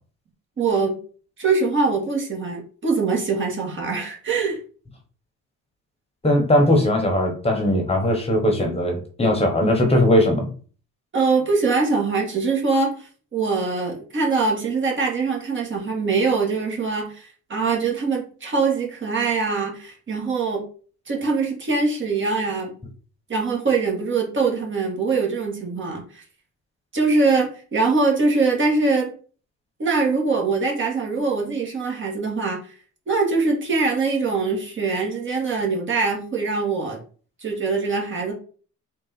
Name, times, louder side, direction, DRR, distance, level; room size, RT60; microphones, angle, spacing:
voice 1, 0.6-1.0 1.4-4.6 11.1-20.6 21.1-22.7 23.3-26.2 26.9-29.1 29.8-32.7 33.1-37.0 37.4-38.3, right 4 dB, 40° right, 1.5 m, -23 dB
voice 2, 6.2-10.5, left 1 dB, 20° left, 1.0 m, -19 dB
3.8 x 2.5 x 4.0 m
cardioid pair, 90°, 30 cm